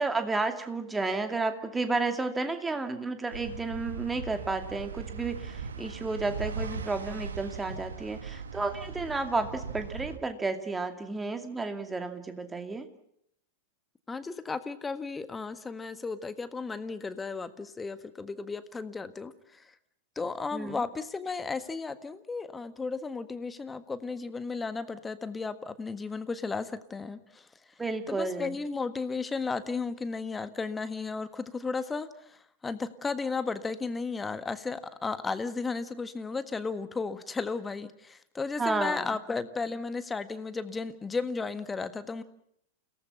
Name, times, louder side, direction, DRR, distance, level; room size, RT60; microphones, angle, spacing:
voice 1, 0.0-12.9 20.5-20.8 27.8-28.6 38.6-39.1, right 3 dB, 10° right, 7 dB, 2.5 m, -32 dB
sound 1, 3.3-10.2, right 5 dB, 70° right, 1.7 m, -39 dB
voice 2, 14.1-19.7 20.1-27.5 28.1-42.2, left 4 dB, 15° left, 12 dB, 1.6 m, -34 dB
29.5 x 18.5 x 5.9 m, 0.70 s
figure-of-eight pair, 90°, 0 cm